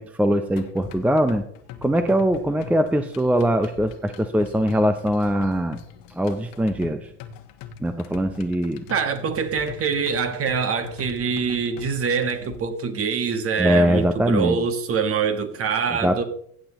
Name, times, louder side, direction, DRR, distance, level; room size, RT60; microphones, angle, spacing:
voice 1, 0.0-1.4 1.8-5.8 6.2-7.0 7.8-8.8 13.6-14.6 15.9-16.2, equal, 5° right, 0.5 m, -21 dB
sound 1, 0.6-12.6, left 7 dB, 70° left, 1.3 m, -42 dB
voice 2, 8.9-16.2, right 6 dB, 40° right, 1.6 m, -24 dB
15.5 x 7.8 x 3.0 m
supercardioid pair, 100°, 35 cm